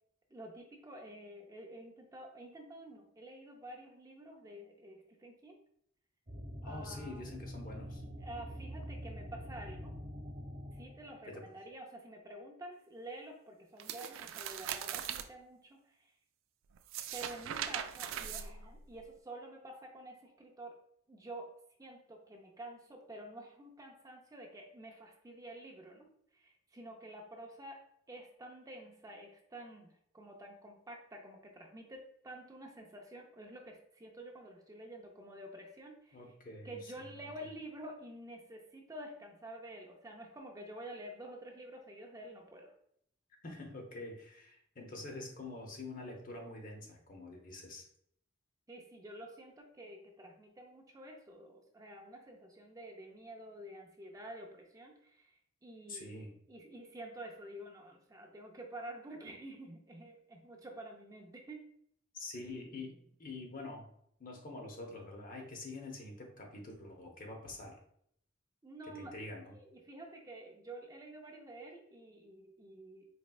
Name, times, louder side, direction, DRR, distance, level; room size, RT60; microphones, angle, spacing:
voice 1, 0.3-5.6 6.6-7.3 8.2-9.9 10.7-16.1 17.1-20.8 21.1-21.5 21.8-26.1 26.3-27.8 28.1-36.2 36.6-42.7 48.7-56.2 56.5-61.6 68.6-69.1 69.5-73.1, right 1 dB, 20° right, 1 dB, 0.5 m, -49 dB
sound 1, 6.3-11.3, equal, 40° right, 1.0 m, -45 dB
voice 2, 6.6-8.0 11.3-11.4 36.1-36.9 43.4-47.9 55.9-56.3 62.1-63.9 64.2-67.8 68.9-69.5, left 2 dB, 45° left, 1 dB, 0.8 m, -46 dB
sound 2, 13.8-15.3 16.8-19.0, right 9 dB, 85° right, 0.3 m, -40 dB
4.2 x 3.2 x 2.3 m, 0.68 s
head